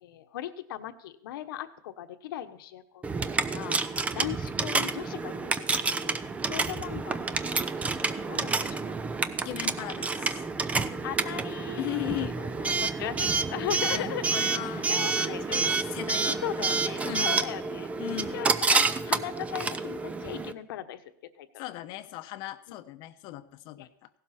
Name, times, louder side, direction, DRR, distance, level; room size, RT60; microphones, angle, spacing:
voice 1, 0.0-5.6 5.9-6.2 6.4-7.4 7.7-8.9 11.0-14.5 14.9-15.8 16.3-17.9 18.3-21.0 21.4-21.6 23.8-23.9, left 12 dB, 75° left, 8 dB, 1.2 m, -38 dB
Coin (dropping) / Alarm, 3.0-20.5, right 4 dB, 10° right, 0.6 m, -29 dB
voice 2, 9.4-10.4 11.8-12.3 13.9-17.5 18.0-18.4 21.6-24.1, left 16 dB, 45° left, 11 dB, 0.9 m, -38 dB
16.5 x 12.0 x 4.3 m, 0.66 s
supercardioid pair, 145°, 11 cm